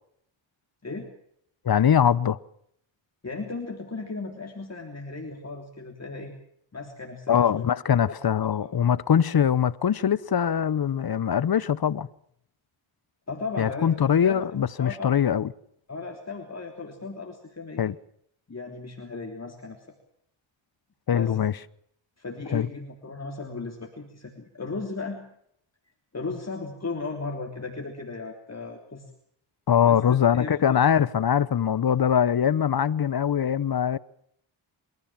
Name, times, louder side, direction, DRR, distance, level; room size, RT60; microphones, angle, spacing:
voice 1, 1.6-2.4 7.3-12.1 13.6-15.5 17.8-17.9 21.1-21.5 22.5-22.7 29.7-34.0, left 8 dB, 50° left, 0.9 m, -22 dB
voice 2, 3.2-6.3 6.7-7.7 8.1-8.2 8.6-8.7 13.3-14.4 14.8-15.2 15.9-17.8 18.5-19.9 21.1-21.4 22.2-25.2 26.1-29.1 29.8-30.0 30.3-30.8, left 3 dB, 30° left, 3.4 m, -36 dB
27.5 x 15.0 x 7.4 m
cardioid pair, 60°, 48 cm